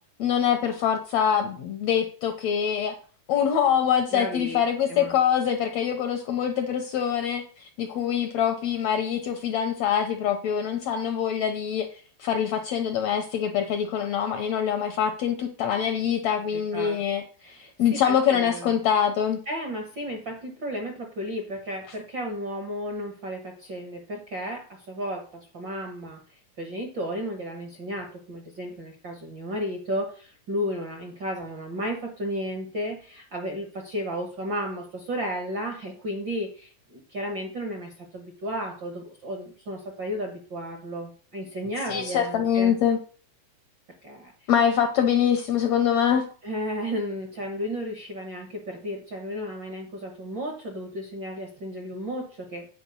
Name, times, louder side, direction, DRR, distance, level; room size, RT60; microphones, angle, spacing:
voice 1, 0.2-3.0 3.3-11.9 12.2-17.2 17.5-19.4 41.9-43.0 44.5-46.3, left 8 dB, 75° left, 6 dB, 1.6 m, -24 dB
voice 2, 4.1-4.6 4.9-5.1 16.5-17.0 17.4-18.7 19.5-42.7 44.0-44.5 46.4-52.7, equal, 55° right, 3 dB, 1.2 m, -33 dB
9.2 x 4.3 x 6.9 m, 0.42 s
omnidirectional pair, 3.9 m